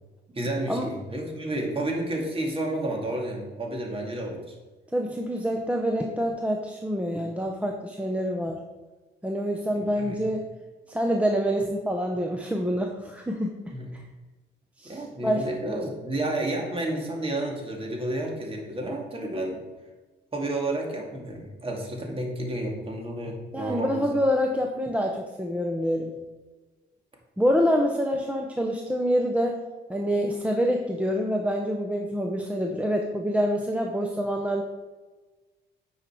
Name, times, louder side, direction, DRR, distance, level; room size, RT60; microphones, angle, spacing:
voice 1, 0.3-4.5 10.0-10.2 13.7-13.9 14.8-19.6 20.3-24.0, right 1 dB, 30° right, 0 dB, 2.3 m, -31 dB
voice 2, 4.9-8.6 9.2-10.4 10.9-13.5 14.8-15.5 23.5-26.1 27.4-29.6 29.9-34.6, equal, 5° right, 1 dB, 0.8 m, -26 dB
9.5 x 5.7 x 4.6 m, 1.2 s
cardioid pair, 90°, 20 cm